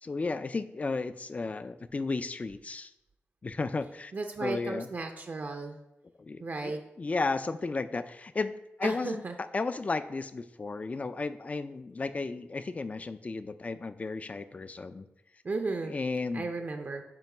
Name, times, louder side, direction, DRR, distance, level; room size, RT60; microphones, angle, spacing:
voice 1, 0.0-2.9 3.4-4.1 4.4-4.9 6.2-15.1 15.8-16.5, left 3 dB, 35° left, 12 dB, 0.4 m, -34 dB
voice 2, 4.1-5.8 6.4-6.8 8.8-9.3 15.4-15.9 16.3-17.0, right 3 dB, 45° right, 4 dB, 0.5 m, -34 dB
8.9 x 3.0 x 5.9 m, 0.89 s
wide cardioid pair, 125°, 4 cm